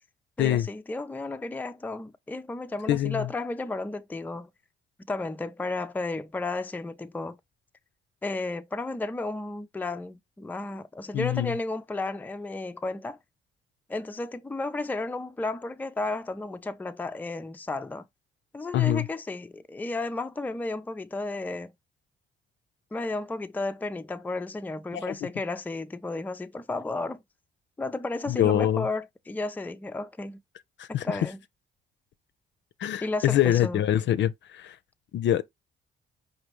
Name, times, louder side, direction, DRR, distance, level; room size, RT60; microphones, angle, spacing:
voice 1, 0.4-4.5 5.1-7.4 8.2-13.2 13.9-18.0 18.5-21.7 22.9-27.2 27.8-30.4 30.9-31.4 33.0-33.8, left 2 dB, 10° left, 0.4 m, -33 dB
voice 2, 2.9-3.3 11.1-11.5 18.7-19.1 24.9-25.1 28.3-28.9 30.8-31.2 32.8-34.8 35.1-35.4, left 12 dB, 65° left, 0.6 m, -25 dB
5.1 x 2.6 x 3.0 m
cardioid pair, 90°, 20 cm